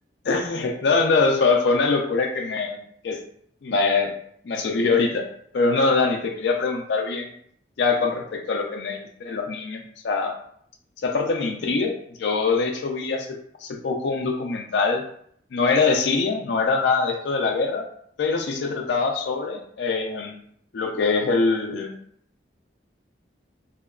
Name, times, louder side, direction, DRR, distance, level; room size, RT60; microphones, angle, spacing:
voice 1, 0.2-3.2 3.6-4.1 4.4-5.3 5.5-7.3 7.8-10.3 11.0-11.9 12.2-13.3 13.6-15.0 15.5-17.8 18.2-20.4 20.7-21.9, left 4 dB, 70° left, 1 dB, 0.4 m, -23 dB
2.8 x 2.2 x 2.3 m, 0.65 s
head